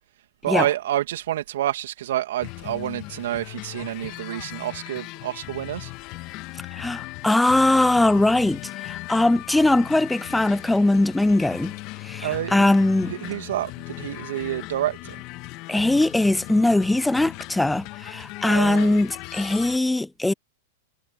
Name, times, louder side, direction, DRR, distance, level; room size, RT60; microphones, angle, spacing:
voice 1, 0.4-5.9 12.2-12.7 13.0-15.2 18.4-19.0, right 13 dB, 70° right, 2.6 m, -28 dB
sound 1, 2.4-19.8, left 22 dB, 45° left, 1.7 m, -38 dB
voice 2, 6.8-11.7 12.0-13.1 15.7-20.3, left 2 dB, 5° left, 0.3 m, -21 dB
hypercardioid pair, 105°, 0 cm